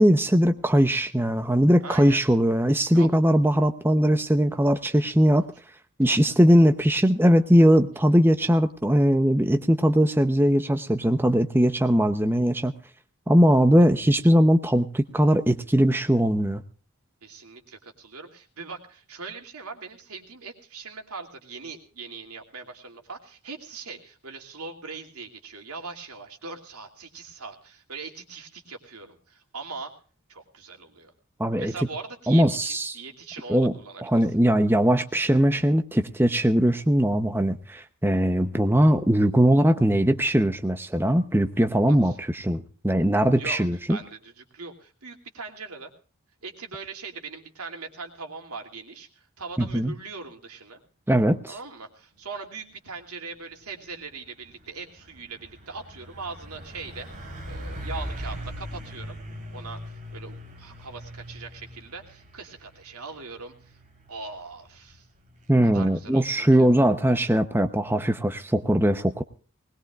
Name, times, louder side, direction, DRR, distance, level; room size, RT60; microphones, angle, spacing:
voice 1, 0.0-5.5 6.0-12.7 13.3-16.6 31.4-31.7 32.3-33.0 33.5-33.7 34.0-44.0 49.6-49.9 51.1-51.6 65.5-69.2, equal, 10° right, 8 dB, 0.8 m, -20 dB
voice 2, 1.8-2.2 2.9-3.1 6.0-6.3 13.8-13.9 17.2-30.0 30.3-31.1 31.6-34.0 41.9-42.2 43.4-45.9 46.4-49.1 49.4-50.8 51.5-57.1 57.4-59.2 59.5-63.8 64.1-65.1 65.6-66.7, right 4 dB, 85° right, 4 dB, 2.8 m, -40 dB
Truck, 53.4-67.7, equal, 35° right, 3.4 m, -41 dB
20.5 x 20.5 x 2.4 m, 0.39 s
head